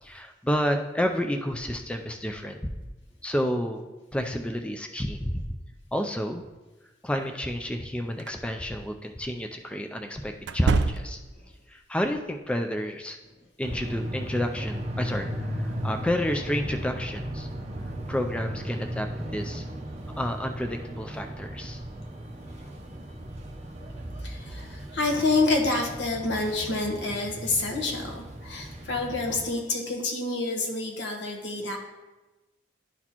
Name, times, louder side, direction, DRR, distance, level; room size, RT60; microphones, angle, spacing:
voice 1, 0.0-2.7 3.2-3.8 4.1-5.4 5.9-6.4 7.0-11.2 11.7-13.2 13.6-17.5 18.1-19.7 20.2-21.8, equal, 5° left, 4 dB, 0.3 m, -30 dB
sound 1, 8.2-8.4 10.4-11.4, right 4 dB, 75° right, 0.4 m, -27 dB
sound 2, 13.6-29.5, equal, 40° right, 0.7 m, -36 dB
voice 2, 24.2-31.8, left 3 dB, 85° left, 2 dB, 1.1 m, -28 dB
11.5 x 4.1 x 2.9 m, 1.1 s
head